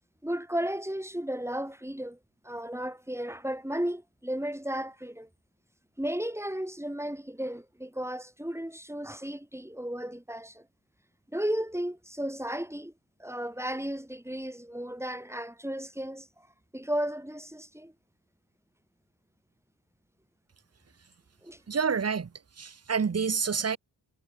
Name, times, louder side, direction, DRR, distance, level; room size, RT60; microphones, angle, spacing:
voice 1, 0.2-2.2 2.4-5.3 6.0-10.7 11.3-12.9 13.2-16.5 16.7-17.9 21.4-21.6, equal, 5° right, 7.6 m, -34 dB
voice 2, 21.7-22.3 22.6-23.8, right 6 dB, 30° right, 1.2 m, -28 dB
supercardioid pair, 45°, 46 cm